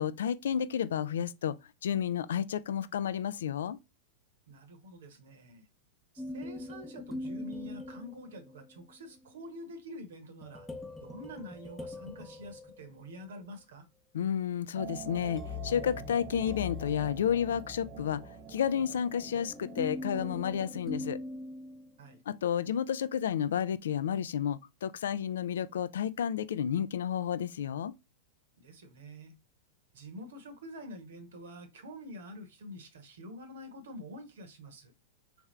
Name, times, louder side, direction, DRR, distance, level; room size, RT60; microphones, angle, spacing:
voice 1, 0.0-1.5 1.8-3.8 14.1-18.2 18.5-21.2 22.3-27.9, left 9 dB, 70° left, 0.3 m, -31 dB
voice 2, 4.5-5.6 6.1-10.7 11.0-13.8 22.0-22.2 28.6-29.3 29.9-34.9, equal, 70° right, 1.0 m, -47 dB
sound 1, 6.2-8.8 10.4-13.4 14.8-22.2, left 2 dB, 5° left, 0.7 m, -42 dB
sound 2, 14.8-20.7, right 11 dB, 35° right, 0.4 m, -47 dB
3.6 x 3.4 x 3.1 m
figure-of-eight pair, 95°, 0 cm